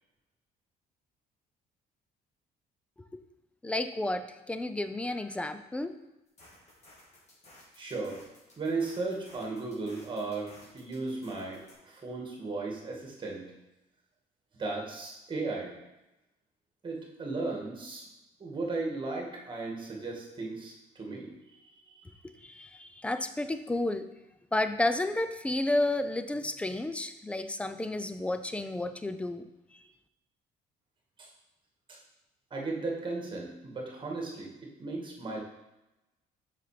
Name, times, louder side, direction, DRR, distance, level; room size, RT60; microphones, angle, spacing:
voice 1, 3.6-6.0 22.4-24.1 24.5-29.5, left 2 dB, 5° left, 10 dB, 0.5 m, -31 dB
sound 1, 6.3-11.7, left 1 dB, 40° left, 3.1 m, -56 dB
voice 2, 7.8-8.2 8.5-13.4 14.6-15.7 16.8-18.1 18.4-21.3 21.6-21.7 31.2-31.3 31.9-32.0 32.5-35.4, right 3 dB, 30° right, -1 dB, 2.1 m, -36 dB
6.5 x 5.9 x 5.1 m, 0.97 s
cardioid pair, 110°, 17 cm